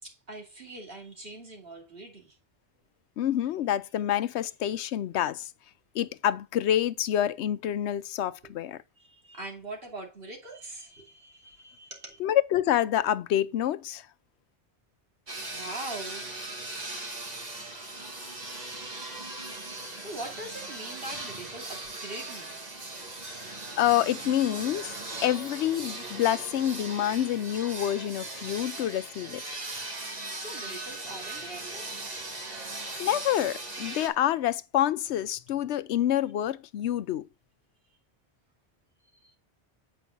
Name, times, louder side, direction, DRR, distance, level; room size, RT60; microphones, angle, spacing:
voice 1, 0.0-2.4 8.4-8.5 9.0-12.2 15.5-16.4 18.4-23.3 30.3-31.9 37.8-38.0 39.1-39.4, right 2 dB, 60° right, 2.9 m, -43 dB
voice 2, 3.2-5.5 5.9-8.8 12.2-14.0 23.4-24.9 25.2-29.4 33.0-37.3, left 11 dB, 80° left, 0.9 m, -27 dB
sound 1, 15.3-34.1, right 2 dB, 40° right, 1.6 m, -39 dB
8.4 x 5.3 x 3.7 m
omnidirectional pair, 1.1 m